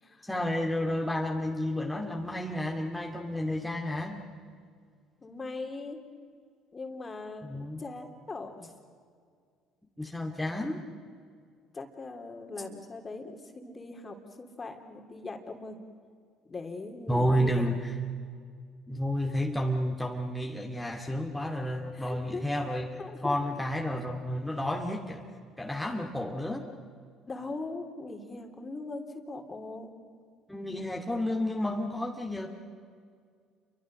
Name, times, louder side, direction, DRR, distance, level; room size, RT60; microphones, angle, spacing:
voice 1, 0.2-4.2 7.4-7.8 10.0-10.8 17.1-17.9 18.9-22.9 23.2-25.3 25.6-26.7 30.5-32.5, equal, 5° left, 0 dB, 2.3 m, -31 dB
voice 2, 5.2-6.0 6.7-8.7 11.7-15.8 16.5-17.8 21.9-22.5 23.0-23.4 25.8-25.9 27.3-29.9, left 3 dB, 30° left, 4 dB, 3.3 m, -40 dB
28.5 x 23.5 x 6.6 m, 2.1 s
hypercardioid pair, 70°, 0 cm